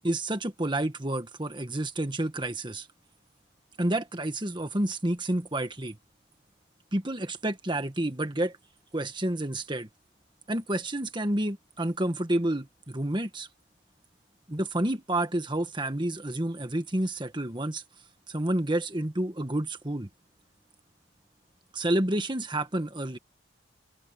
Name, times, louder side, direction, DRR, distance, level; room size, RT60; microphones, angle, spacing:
voice 1, 0.0-2.9 3.8-6.0 6.9-8.6 8.9-9.9 10.5-13.5 14.5-17.8 18.3-20.1 21.7-23.2, right 1 dB, 25° right, 1.6 m, -29 dB
head